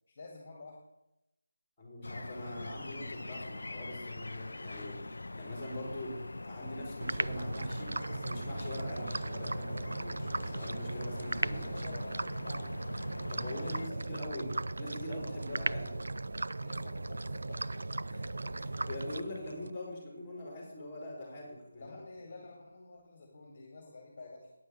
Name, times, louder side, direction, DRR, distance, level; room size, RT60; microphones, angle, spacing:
voice 1, 0.1-0.8 11.5-12.7 13.4-14.1 16.6-17.7 21.7-24.5, left 3 dB, 30° left, 0 dB, 2.1 m, -50 dB
voice 2, 1.8-6.2 6.4-11.8 13.3-15.9 18.1-22.0, left 1 dB, 5° left, -4 dB, 4.2 m, -43 dB
sound 1, 2.0-13.9, left 2 dB, 80° left, 0.4 m, -43 dB
sound 2, 7.0-19.7, right 2 dB, 70° right, 0.4 m, -37 dB
9.7 x 6.4 x 7.7 m, 0.90 s
figure-of-eight pair, 175°, 0 cm